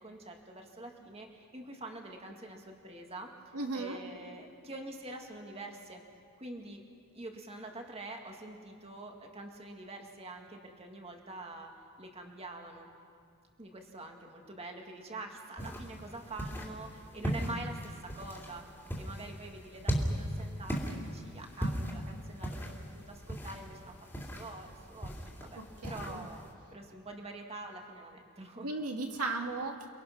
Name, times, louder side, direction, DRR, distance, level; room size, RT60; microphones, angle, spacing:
voice 1, 0.0-3.3 3.7-6.0 6.4-6.8 7.1-11.7 12.0-12.9 13.6-18.7 19.0-24.0 24.3-25.6 25.9-28.7, right 2 dB, 25° right, 2 dB, 2.1 m, -45 dB
voice 2, 3.5-4.0 25.6-26.3 28.6-29.9, right 3 dB, 80° right, 3 dB, 2.1 m, -36 dB
sound 1, 15.6-26.5, equal, 10° left, 2.8 m, -38 dB
29.5 x 22.0 x 6.0 m, 2.3 s
head